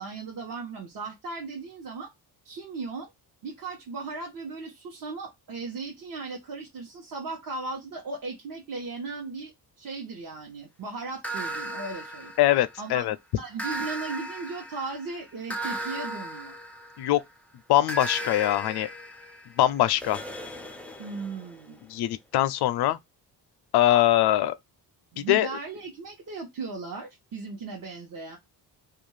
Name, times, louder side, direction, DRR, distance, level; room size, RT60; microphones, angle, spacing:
voice 1, 0.0-2.1 2.4-3.1 3.4-9.5 9.8-12.3 12.8-13.0 13.4-16.5 21.0-21.8 25.1-28.4, right 3 dB, 55° right, 1.0 m, -37 dB
sound 1, 11.2-12.9 13.6-17.3 17.9-21.6, right 1 dB, 5° left, 0.3 m, -37 dB
voice 2, 12.4-13.2 17.0-17.2 17.7-18.9 19.6-20.2 21.9-23.0 23.7-24.5 25.2-25.5, left 13 dB, 70° left, 0.5 m, -22 dB
2.5 x 2.3 x 3.1 m
cardioid pair, 125°, 41 cm